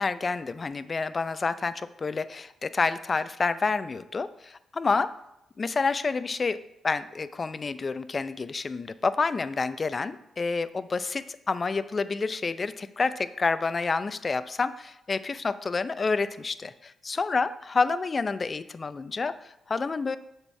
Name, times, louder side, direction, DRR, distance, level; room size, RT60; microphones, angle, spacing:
voice 1, 0.0-5.1 5.6-6.6 6.8-20.2, left 4 dB, 45° left, 14 dB, 0.4 m, -29 dB
6.8 x 4.3 x 4.6 m, 0.84 s
supercardioid pair, 50°, 0 cm